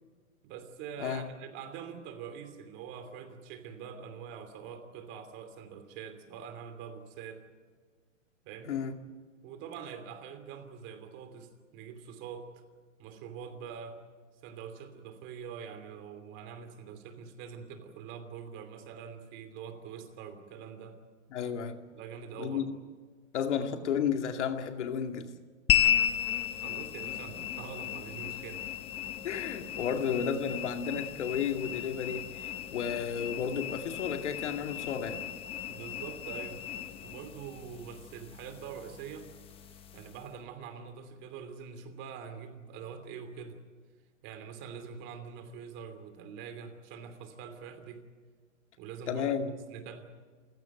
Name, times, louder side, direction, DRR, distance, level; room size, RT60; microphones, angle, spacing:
voice 1, 0.4-7.4 8.4-8.8 9.4-12.6 13.0-14.0 14.4-21.0 21.9-22.6 26.6-28.6 35.7-36.6 37.0-43.6 44.2-48.0 48.8-50.1, right 7 dB, 30° right, 2.9 m, -44 dB
voice 2, 8.7-9.0 21.3-21.8 22.4-22.6 23.3-25.3 29.2-35.2 49.1-49.5, left 7 dB, 60° left, 2.3 m, -32 dB
sound 1, 25.7-40.3, left 12 dB, 15° left, 0.9 m, -35 dB
28.0 x 16.5 x 9.1 m
hypercardioid pair, 145°, 39 cm